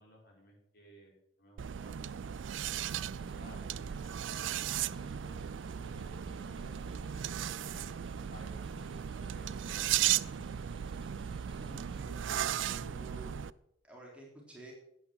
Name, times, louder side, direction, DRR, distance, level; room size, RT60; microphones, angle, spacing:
voice 1, 0.0-2.0 2.2-2.6 3.2-4.2 4.9-5.4 5.7-7.7 8.3-8.8 9.2-10.7, equal, 55° left, -1 dB, 4.8 m, -57 dB
sound 1, 1.6-13.5, right 10 dB, 85° right, 0.4 m, -36 dB
Snare drum, 2.5-12.1, right 1 dB, 30° right, 1.7 m, -53 dB
voice 2, 11.6-13.4 13.8-14.7, right 2 dB, 5° right, -3 dB, 3.4 m, -51 dB
11.5 x 8.8 x 6.1 m, 0.74 s
head